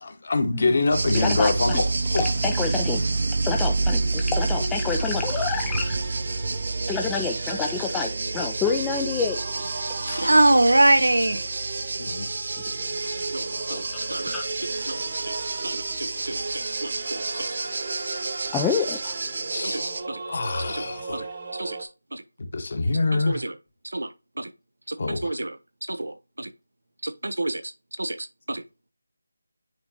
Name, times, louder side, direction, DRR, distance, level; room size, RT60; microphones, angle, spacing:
voice 1, 0.3-2.3 5.0-5.1 10.1-10.4 12.0-12.3 17.3-17.5 19.5-19.8 20.3-21.3 22.5-23.4 25.0-25.3, left 3 dB, 50° left, 1.4 m, -25 dB
sound 1, 0.9-20.0, right 3 dB, 55° right, 0.7 m, -29 dB
voice 2, 1.1-1.8 2.2-3.0 3.4-6.0 6.9-9.9 13.7-14.4 18.5-19.2, left 6 dB, 10° left, 0.4 m, -28 dB
Singing / Musical instrument, 2.5-21.8, right 3 dB, 40° right, 1.2 m, -37 dB
voice 3, 10.2-11.4 13.3-13.8 14.1-14.3 14.9-15.3 15.6-17.5 19.6-20.2 20.7-20.8 21.1-21.3 21.5-22.2 23.1-23.5 23.8-24.1 24.4-24.5 24.9-25.6 25.8-26.5 27.0-27.7 28.0-28.6, right 1 dB, 85° right, 0.8 m, -25 dB
9.7 x 4.0 x 3.0 m
figure-of-eight pair, 165°, 0 cm